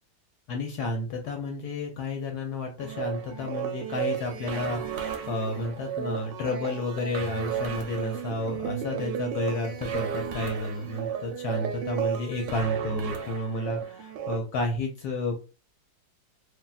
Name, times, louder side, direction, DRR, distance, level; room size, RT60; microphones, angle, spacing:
voice 1, 0.5-15.3, left 2 dB, 70° left, 2 dB, 0.9 m, -31 dB
sound 1, 2.8-14.4, right 8 dB, 80° right, 1.2 m, -33 dB
3.4 x 2.3 x 2.3 m, 0.33 s
omnidirectional pair, 2.1 m